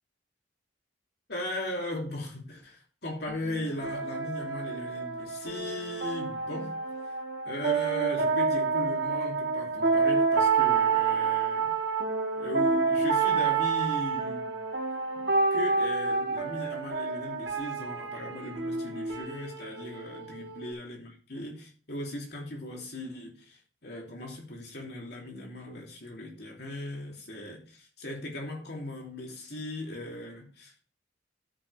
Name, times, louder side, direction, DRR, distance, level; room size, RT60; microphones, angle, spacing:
voice 1, 1.3-6.7 7.4-11.7 12.3-14.6 15.1-30.8, left 1 dB, 60° left, 3.0 m, -38 dB
sound 1, 3.3-20.7, right 4 dB, 70° right, 2.0 m, -28 dB
13.0 x 6.3 x 3.4 m
head